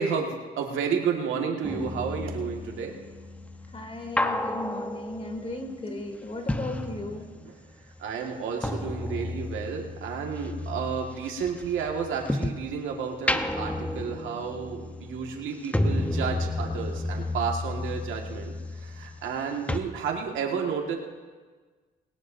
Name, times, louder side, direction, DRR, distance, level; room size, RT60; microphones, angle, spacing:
voice 1, 0.0-2.9 7.4-7.6 8.0-20.9, right 6 dB, 80° right, 1 dB, 1.8 m, -31 dB
sound 1, 1.6-7.6 7.9-12.7 13.1-19.4 19.7-19.8, left 1 dB, 5° left, 0.9 m, -32 dB
voice 2, 3.7-7.3, left 2 dB, 30° left, 2 dB, 3.0 m, -36 dB
20.5 x 18.0 x 2.7 m, 1.4 s
cardioid pair, 90°, 20 cm